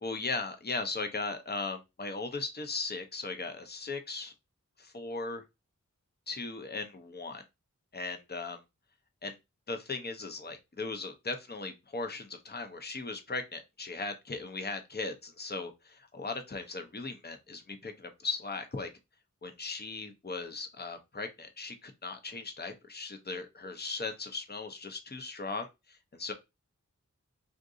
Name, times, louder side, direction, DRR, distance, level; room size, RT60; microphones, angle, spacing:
voice 1, 0.0-4.3 4.8-5.4 6.3-7.4 7.9-8.6 9.2-9.4 9.7-18.9 19.4-26.3, left 3 dB, 30° left, 0.6 m, -38 dB
3.7 x 2.6 x 2.5 m
wide cardioid pair, 45°, 31 cm